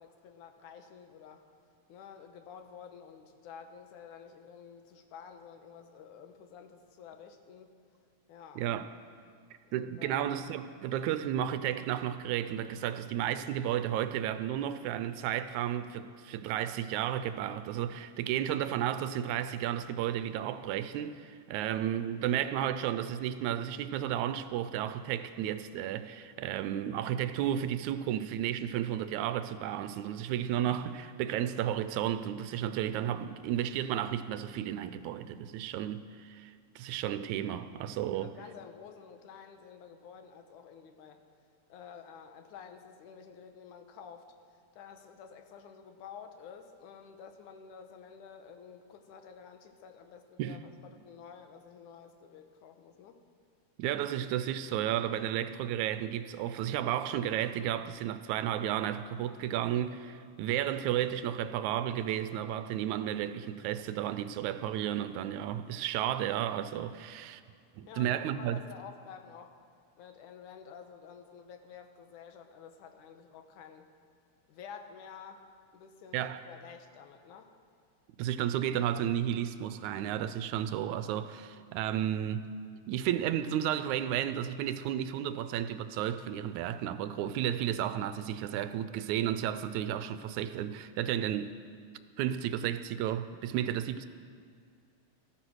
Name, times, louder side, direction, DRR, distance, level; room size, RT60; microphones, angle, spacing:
voice 1, 0.0-1.5 1.9-7.7 8.3-8.8 9.7-10.3 38.1-41.2 41.7-44.3 44.7-53.2 67.8-69.5 70.0-73.9 74.5-77.5, left 7 dB, 85° left, 2.5 m, -50 dB
voice 2, 8.6-8.9 9.7-38.3 50.4-50.6 53.8-67.4 67.8-68.6 76.1-76.4 78.2-82.5 82.9-91.5 92.2-94.1, right 11 dB, 80° right, 1.9 m, -33 dB
14.5 x 14.0 x 6.3 m
omnidirectional pair, 3.5 m